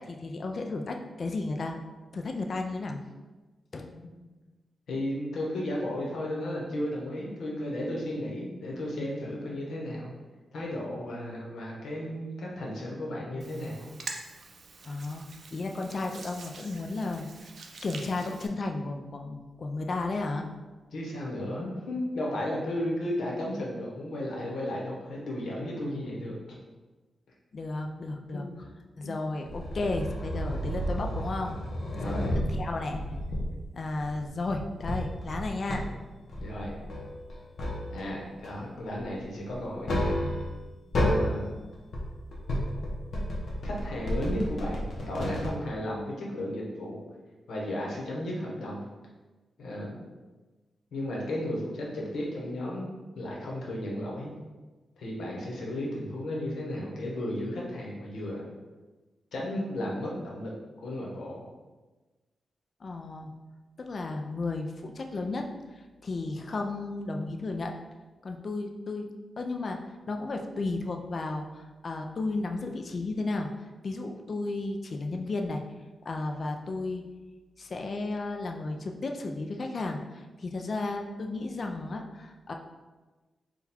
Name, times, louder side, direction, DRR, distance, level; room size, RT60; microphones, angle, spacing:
voice 1, 0.0-1.8 2.1-3.0 3.7-4.0 14.8-17.5 17.8-20.5 27.5-28.5 29.0-31.6 32.0-32.2 32.5-33.0 33.7-35.8 62.8-63.3 63.8-67.7 68.2-69.1 69.4-73.5 73.8-75.6 76.1-77.1 77.6-82.5, left 2 dB, 45° left, 3 dB, 0.3 m, -33 dB
voice 2, 4.9-10.1 10.5-13.9 20.9-26.4 28.3-28.4 31.9-32.3 36.4-36.7 37.9-40.2 41.0-41.5 43.6-47.0 47.5-48.8 49.6-50.0 50.9-52.9 53.2-54.3 55.0-58.4 59.3-60.5 60.8-61.4, left 1 dB, 85° left, -3 dB, 1.0 m, -34 dB
Hands, 13.4-18.5, right 3 dB, 55° right, 0.4 m, -45 dB
sound 1, 29.5-33.6 34.0-35.8 36.3-38.1 38.4-40.6 40.9-41.3 41.7-45.5, equal, 60° left, 0.9 m, -32 dB
3.8 x 2.3 x 4.2 m, 1.2 s
wide cardioid pair, 125°, 0 cm